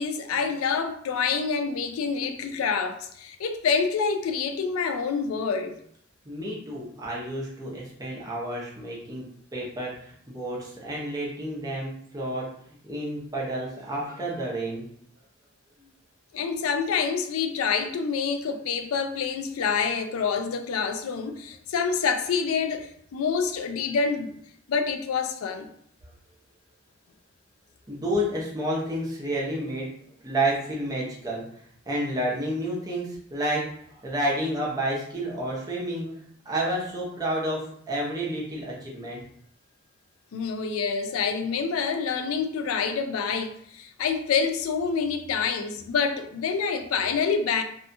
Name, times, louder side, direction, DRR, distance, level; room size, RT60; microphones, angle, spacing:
voice 1, 0.0-5.8 16.3-24.3 24.7-25.7 40.3-47.6, left 5 dB, 85° left, 0.4 m, -27 dB
voice 2, 6.2-9.2 9.5-12.5 12.8-14.8 27.9-29.9 30.2-31.4 31.9-39.2, right 1 dB, 20° right, 0.7 m, -30 dB
2.7 x 2.3 x 2.6 m
head